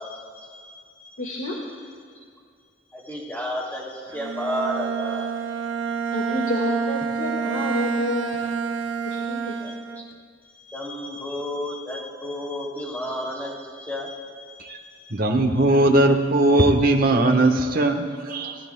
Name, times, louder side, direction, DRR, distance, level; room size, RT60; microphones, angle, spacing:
voice 1, 0.0-1.3 2.9-5.4 5.9-6.0 9.4-10.0 10.4-15.1, left 1 dB, 10° left, -2 dB, 2.7 m, -33 dB
voice 2, 1.2-1.6 6.1-8.4 9.1-9.6, left 1 dB, 85° left, -2 dB, 1.8 m, -29 dB
Bowed string instrument, 4.1-10.2, right 5 dB, 85° right, 0.7 m, -28 dB
voice 3, 15.1-18.6, right 2 dB, 50° right, 4 dB, 1.2 m, -19 dB
28.5 x 18.0 x 2.3 m, 2.2 s
head